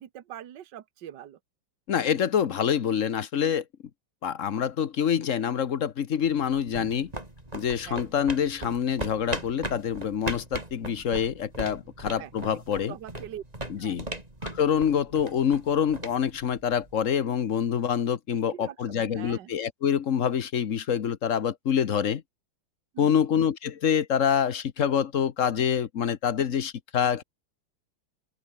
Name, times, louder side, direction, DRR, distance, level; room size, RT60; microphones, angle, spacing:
voice 1, 0.0-1.4 7.8-8.0 12.2-12.3 12.9-13.4 13.8-14.0 18.3-19.5 22.9-23.2, right 11 dB, 60° right, 1.8 m, -43 dB
voice 2, 1.9-3.6 4.2-7.1 7.5-12.9 13.7-14.1 14.5-22.2 23.0-27.2, left 8 dB, 50° left, 1.1 m, -26 dB
sound 1, 6.4-17.1, right 1 dB, 20° right, 4.3 m, -39 dB
open air
omnidirectional pair, 2.3 m